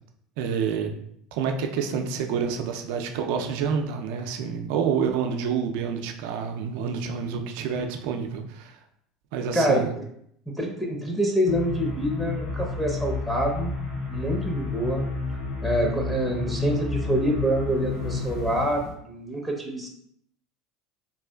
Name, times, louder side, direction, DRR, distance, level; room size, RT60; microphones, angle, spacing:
voice 1, 0.4-0.9 1.3-8.8 9.3-9.9, right 6 dB, 75° right, 4 dB, 0.4 m, -28 dB
voice 2, 10.6-13.7 14.1-15.1 15.6-19.9, right 1 dB, ahead, -1 dB, 0.7 m, -26 dB
sound 1, 11.4-18.9, left 4 dB, 65° left, 1.3 m, -30 dB
3.7 x 2.4 x 2.3 m, 0.71 s
supercardioid pair, 90°, 0 cm